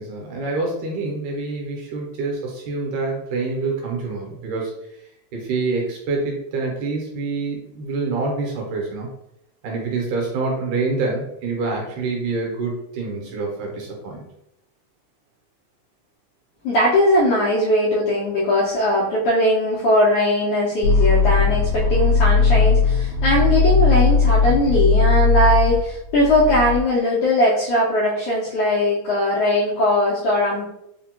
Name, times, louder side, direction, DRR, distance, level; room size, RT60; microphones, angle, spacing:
voice 1, 0.0-4.7 5.3-9.1 9.6-14.2, right 3 dB, 80° right, -1 dB, 2.3 m, -26 dB
voice 2, 16.6-30.7, left 1 dB, 75° left, -7 dB, 1.3 m, -19 dB
sound 1, 20.8-26.8, left 4 dB, 50° left, 1.6 m, -18 dB
4.9 x 2.2 x 2.8 m, 0.80 s
omnidirectional pair, 3.5 m